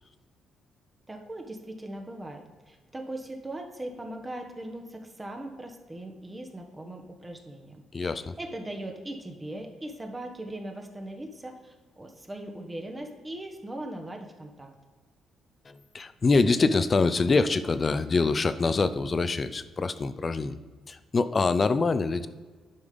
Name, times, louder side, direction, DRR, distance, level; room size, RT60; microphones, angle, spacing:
voice 1, 1.1-2.4 2.7-14.7, right 1 dB, 20° right, 3 dB, 1.1 m, -39 dB
voice 2, 7.9-8.3 15.7-20.6 20.9-22.3, left 3 dB, 35° left, 13 dB, 0.5 m, -25 dB
9.8 x 5.3 x 5.2 m, 1.4 s
cardioid pair, 90°, 0 cm